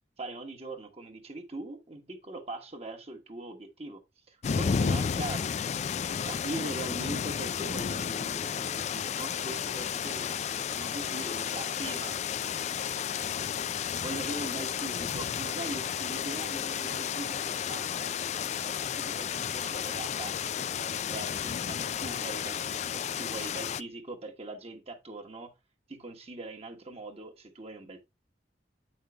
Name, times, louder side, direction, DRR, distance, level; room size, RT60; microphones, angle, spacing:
voice 1, 0.2-4.0 4.3-5.5 6.3-12.2 14.0-18.1 18.6-25.5 25.9-28.0, right 2 dB, 35° right, 1.3 m, -41 dB
sound 1, 4.4-23.8, left 7 dB, 40° left, 0.3 m, -32 dB
8.9 x 5.5 x 3.4 m
head